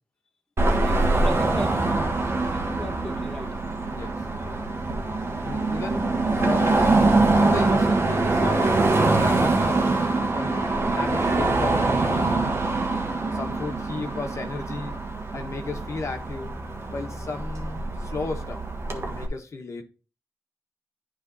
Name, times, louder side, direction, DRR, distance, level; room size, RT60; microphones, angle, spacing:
Car passing by / Traffic noise roadway noise / Engine, 0.6-19.3, right 2 dB, 55° right, 1.3 m, -24 dB
voice 1, 0.8-1.7 2.5-3.5, left 1 dB, 10° left, 1.2 m, -37 dB
voice 2, 3.9-4.3 5.4-10.1 10.4-12.5 13.2-14.9 15.3-16.5 16.9-19.8, left 3 dB, 65° left, 1.2 m, -34 dB
sound 1, 11.3-15.1 15.9-16.4 17.0-17.6 18.0-18.1 18.2-19.1, right 4 dB, 90° right, 0.9 m, -42 dB
9.8 x 3.4 x 4.0 m
cardioid pair, 60°, 5 cm